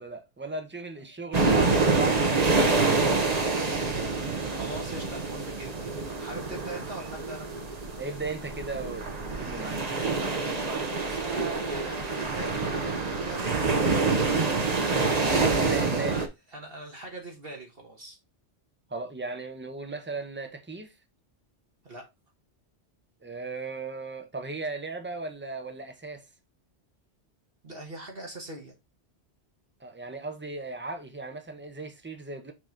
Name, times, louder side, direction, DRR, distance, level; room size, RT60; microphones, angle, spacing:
voice 1, 0.0-4.1 8.0-9.9 15.6-16.2 18.9-21.0 23.2-26.3 29.8-32.5, right 3 dB, 10° right, 0.8 m, -37 dB
sound 1, 1.3-16.3, right 3 dB, 35° right, 1.0 m, -27 dB
voice 2, 4.6-5.9 6.2-7.5 10.2-14.0 15.3-16.3 16.5-18.2 21.8-22.0 27.6-28.7, right 2 dB, 55° right, 1.7 m, -41 dB
6.3 x 3.0 x 5.1 m
omnidirectional pair, 1.2 m